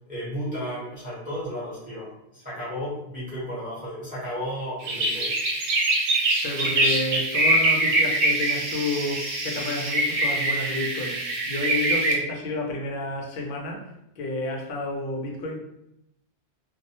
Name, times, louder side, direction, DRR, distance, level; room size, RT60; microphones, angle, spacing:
voice 1, 0.1-5.3, equal, 10° right, -10 dB, 0.8 m, -33 dB
sound 1, 4.8-12.1, right 2 dB, 85° right, 0.9 m, -24 dB
voice 2, 6.4-11.2 11.5-13.9 14.2-15.6, left 2 dB, 60° left, 1 dB, 0.6 m, -30 dB
2.2 x 2.0 x 2.7 m, 0.82 s
omnidirectional pair, 1.2 m